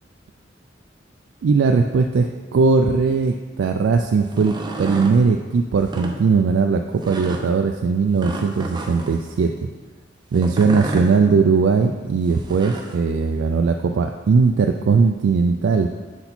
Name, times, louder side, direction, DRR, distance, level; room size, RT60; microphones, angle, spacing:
voice 1, 1.4-9.5 10.3-15.9, right 4 dB, 70° right, 4 dB, 0.3 m, -19 dB
sound 1, 4.2-5.2 5.8-6.1 7.0-7.4 8.2-9.2 10.3-11.1 12.3-12.9, right 1 dB, 25° right, 0.6 m, -30 dB
6.8 x 4.2 x 4.2 m, 1.4 s
head